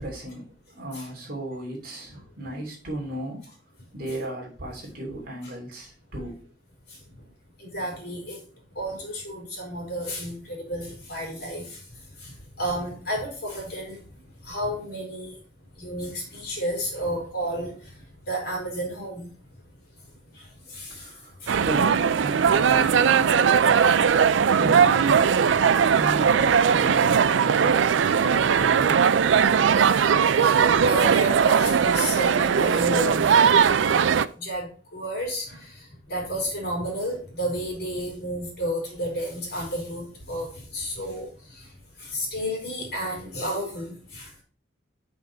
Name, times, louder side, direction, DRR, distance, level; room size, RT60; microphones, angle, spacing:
voice 1, 0.0-3.4 3.9-6.4 20.9-25.5 25.8-29.0, right 1 dB, 50° right, 2.9 m, -35 dB
voice 2, 7.6-8.4 8.7-11.8 12.2-14.0 14.4-15.4 15.8-17.8 18.3-19.3 20.3-21.1 21.4-21.5 23.8-24.0 29.8-30.1 30.4-33.4 34.4-41.7 42.0-44.4, equal, 55° left, 4.0 m, -32 dB
sound 1, 21.5-34.3, right 7 dB, 75° right, 0.4 m, -19 dB
6.1 x 5.7 x 4.5 m
head